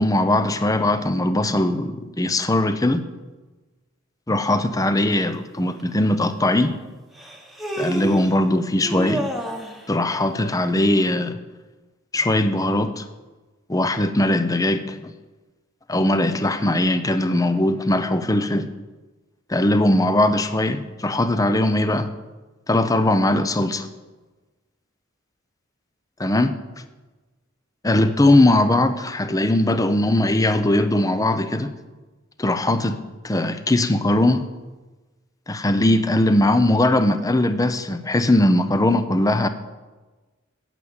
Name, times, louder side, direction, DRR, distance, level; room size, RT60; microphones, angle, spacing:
voice 1, 0.0-3.0 4.3-6.7 7.8-9.3 9.9-11.4 12.1-13.0 13.7-14.8 15.9-18.7 19.5-22.1 22.7-23.9 26.2-26.6 27.8-31.7 32.4-34.4 35.5-39.5, left 1 dB, 15° left, 11 dB, 0.7 m, -20 dB
Human voice, 5.8-5.9 7.2-8.4 8.8-9.8, right 1 dB, ahead, 1.3 m, -29 dB
9.2 x 8.0 x 8.7 m, 1.2 s
head